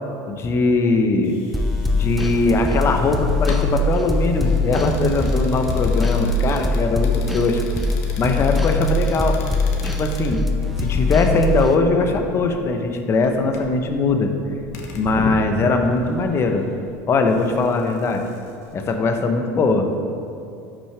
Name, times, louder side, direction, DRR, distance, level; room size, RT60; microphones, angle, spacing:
voice 1, 0.3-1.4 1.9-7.6 8.2-9.4 9.8-10.4 10.8-14.3 14.7-16.7 17.1-18.2 18.7-20.0, left 3 dB, 35° left, 5 dB, 0.9 m, -20 dB
sound 1, 1.2-18.9, left 3 dB, 85° left, 1.1 m, -43 dB
sound 2, 1.5-11.8, left 2 dB, ahead, 0.7 m, -22 dB
12.0 x 6.1 x 3.4 m, 2.5 s
supercardioid pair, 120°, 8 cm